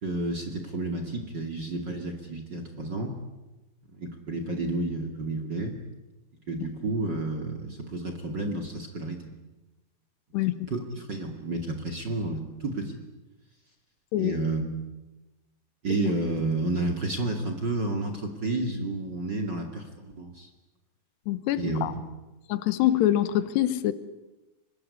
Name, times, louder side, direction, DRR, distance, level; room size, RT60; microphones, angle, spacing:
voice 1, 0.0-3.1 3.9-5.7 6.5-9.2 10.7-13.0 14.2-14.6 15.8-20.5 21.5-21.8, right 2 dB, 30° right, 6 dB, 2.3 m, -31 dB
voice 2, 21.3-21.9 22.5-23.9, left 13 dB, 80° left, 14 dB, 3.2 m, -25 dB
24.5 x 21.5 x 9.8 m, 1.1 s
omnidirectional pair, 4.9 m